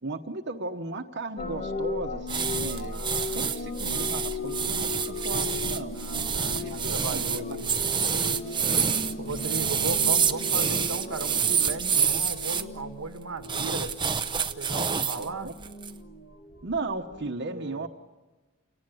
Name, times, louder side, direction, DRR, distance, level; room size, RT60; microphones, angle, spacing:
voice 1, 0.0-6.0 6.5-7.6 15.2-15.5 16.6-17.9, right 3 dB, 55° right, 2 dB, 1.2 m, -36 dB
sound 1, 1.4-17.3, left 3 dB, 45° left, 1.8 m, -37 dB
sound 2, 2.3-12.6 13.4-15.3 15.6-15.9, right 7 dB, 20° right, 0.8 m, -27 dB
voice 2, 2.9-3.6 5.9-7.7 9.2-13.9 14.6-15.5 17.5-17.9, right 3 dB, 75° right, 7 dB, 1.4 m, -36 dB
sound 3, 3.4-12.1, equal, 85° left, 1.3 m, -43 dB
29.5 x 18.5 x 9.2 m, 1.3 s
head